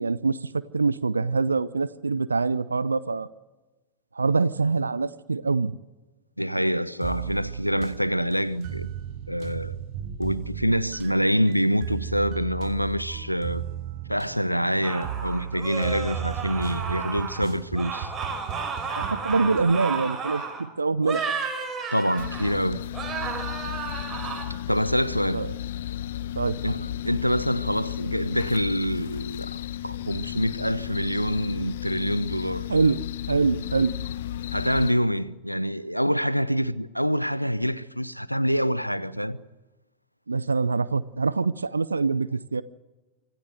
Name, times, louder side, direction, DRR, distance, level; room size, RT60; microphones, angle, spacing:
voice 1, 0.0-3.3 4.2-5.7 19.0-21.2 25.3-25.5 26.4-26.6 32.7-33.0 33.3-33.9 40.3-42.6, right 4 dB, 80° right, 0.6 m, -24 dB
voice 2, 6.4-8.9 9.3-9.8 10.2-13.6 14.1-18.1 21.9-22.8 24.7-25.5 26.6-29.6 29.8-32.7 34.5-39.4, equal, 90° left, 0.7 m, -26 dB
sound 1, 7.0-19.8, right 8 dB, 45° right, 1.3 m, -36 dB
sound 2, 14.8-17.4 17.7-20.6 21.0-22.6 22.9-24.4, right 5 dB, 20° right, 5.5 m, -33 dB
sound 3, 22.2-34.9, left 12 dB, 60° left, 1.0 m, -34 dB
25.5 x 14.5 x 7.9 m
figure-of-eight pair, 90°, 0 cm